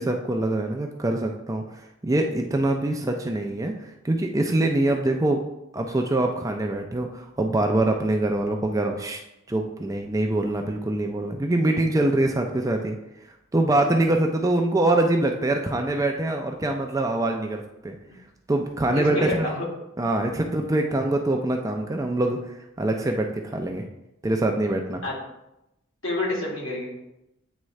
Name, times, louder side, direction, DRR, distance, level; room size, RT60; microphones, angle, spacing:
voice 1, 0.0-5.4 5.7-9.2 9.5-13.0 13.5-18.0 18.5-19.5 20.0-23.8 24.2-25.0, right 2 dB, 15° right, 3 dB, 0.4 m, -24 dB
voice 2, 18.9-19.6 25.0-25.1 26.0-26.9, left 2 dB, 65° left, -5 dB, 2.5 m, -28 dB
9.0 x 3.6 x 3.2 m, 0.87 s
head